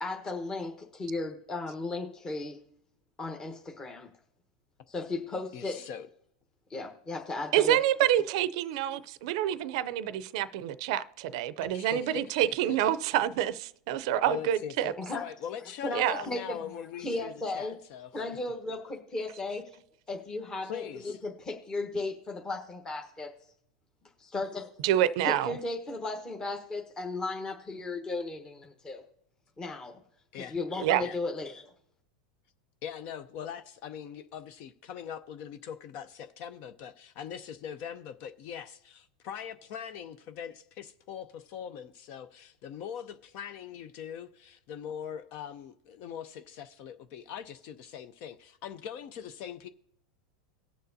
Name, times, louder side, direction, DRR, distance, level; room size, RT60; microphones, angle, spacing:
voice 1, 0.0-2.6 3.2-4.1 4.9-5.8 6.7-7.8 15.0-15.2 15.8-17.8 18.1-19.7 20.1-23.3 24.2-24.7 25.2-29.0 29.6-30.0 30.3-31.6, left 2 dB, 20° left, 1.1 m, -35 dB
voice 2, 5.5-6.1 11.7-12.8 14.2-18.1 20.6-21.2 30.3-30.6 31.0-31.2 32.8-49.7, left 8 dB, 55° left, 0.6 m, -41 dB
voice 3, 7.5-14.9 15.9-16.2 24.8-25.5 30.8-31.0, right 12 dB, 65° right, 0.5 m, -27 dB
19.0 x 6.6 x 2.7 m
supercardioid pair, 120°, 4 cm